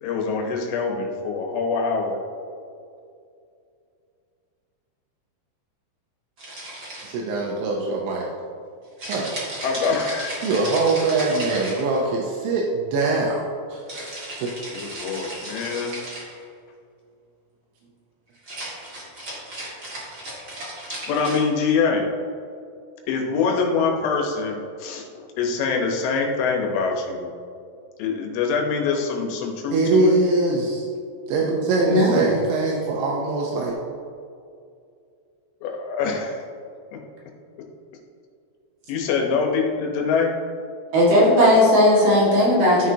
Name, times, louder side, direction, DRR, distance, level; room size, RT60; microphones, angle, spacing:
voice 1, 0.0-2.2 9.6-10.5 14.7-16.0 21.1-22.1 23.1-25.1 25.4-27.3 28.0-30.2 35.6-36.5 36.9-37.0 38.9-40.4, left 5 dB, 85° left, 1 dB, 3.6 m, -24 dB
sound 1, 6.4-7.3 9.0-12.2 13.9-16.4 18.4-21.4, right 1 dB, 45° right, 1.3 m, -35 dB
voice 2, 7.0-8.3 9.1-9.5 10.4-13.4 13.7-14.5 14.9-15.1 29.7-30.8 31.3-33.8, right 3 dB, 80° right, -2 dB, 3.0 m, -23 dB
voice 3, 31.9-32.2 40.9-42.9, left 1 dB, 60° right, -6 dB, 3.5 m, -16 dB
13.0 x 6.3 x 2.8 m, 2.4 s
omnidirectional pair, 5.4 m